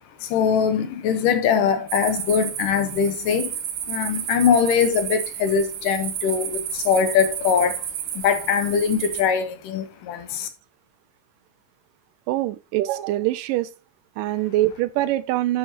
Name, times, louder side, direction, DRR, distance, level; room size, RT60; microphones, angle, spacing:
voice 1, 0.2-3.6 3.9-7.9 8.1-10.5, left 7 dB, 80° left, 2.6 m, -22 dB
sound 1, 1.9-9.2, right 9 dB, 70° right, 2.4 m, -31 dB
voice 2, 12.3-13.7 14.2-15.6, right 15 dB, 85° right, 2.3 m, -24 dB
9.8 x 6.6 x 2.9 m
omnidirectional pair, 3.8 m